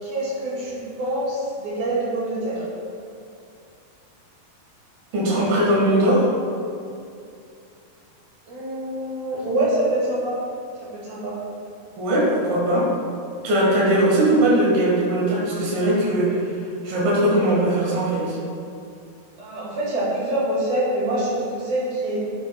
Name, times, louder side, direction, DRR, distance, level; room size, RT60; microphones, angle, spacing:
voice 1, 0.0-2.7 8.5-10.4 10.8-11.4 19.4-22.2, right 1 dB, 55° right, -7 dB, 3.3 m, -25 dB
voice 2, 5.1-6.3 12.0-12.9 13.4-16.4 16.8-18.4, right 1 dB, 80° right, -5 dB, 3.5 m, -19 dB
10.0 x 7.9 x 2.3 m, 2.5 s
omnidirectional pair, 4.2 m